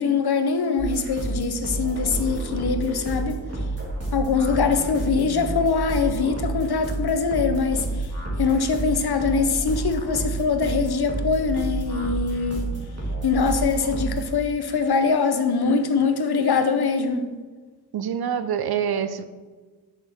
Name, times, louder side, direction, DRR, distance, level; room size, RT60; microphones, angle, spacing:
voice 1, 0.0-3.4 4.1-8.1 8.4-12.7 13.2-17.3, left 5 dB, 65° left, 0.7 m, -23 dB
sound 1, 0.8-14.3, right 2 dB, 35° right, 1.9 m, -29 dB
voice 2, 17.9-19.2, right 8 dB, 65° right, 0.5 m, -26 dB
6.4 x 5.3 x 3.4 m
wide cardioid pair, 90°, 41 cm